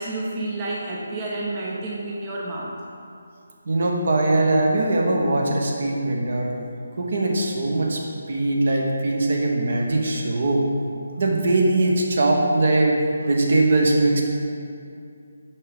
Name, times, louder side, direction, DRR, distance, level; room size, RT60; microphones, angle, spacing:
voice 1, 0.0-2.7, right 2 dB, 25° right, -4 dB, 0.6 m, -30 dB
voice 2, 3.6-6.5 7.0-8.0 8.3-10.7 11.2-14.2, right 2 dB, 50° right, 0 dB, 1.0 m, -21 dB
5.9 x 4.7 x 5.0 m, 2.5 s
figure-of-eight pair, 150°, 0 cm